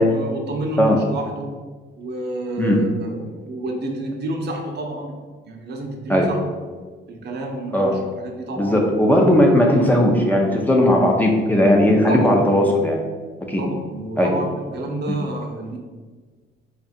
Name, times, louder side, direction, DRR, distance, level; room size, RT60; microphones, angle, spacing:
voice 1, 0.0-1.5 2.0-5.2 5.4-6.4 7.1-8.8 12.1-12.4 13.6-15.8, right 2 dB, 55° right, 2 dB, 0.7 m, -29 dB
voice 2, 8.6-13.0 13.5-13.6 14.2-14.3 15.1-15.2, left 1 dB, 10° left, -1 dB, 0.6 m, -17 dB
3.6 x 2.4 x 4.2 m, 1.4 s
cardioid pair, 90°, 20 cm